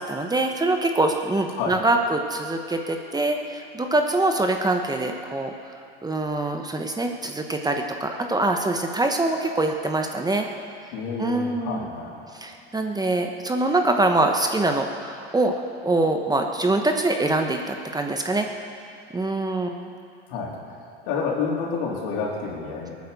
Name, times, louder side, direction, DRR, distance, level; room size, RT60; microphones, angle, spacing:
voice 1, 0.0-5.5 6.0-10.5 11.2-11.9 12.3-15.5 15.8-18.5 19.1-19.9, right 2 dB, 15° right, 4 dB, 1.2 m, -24 dB
voice 2, 10.9-12.1 20.3-20.5 21.0-22.9, left 5 dB, 65° left, -2 dB, 3.8 m, -29 dB
18.5 x 9.5 x 6.9 m, 2.5 s
hypercardioid pair, 95°, 30 cm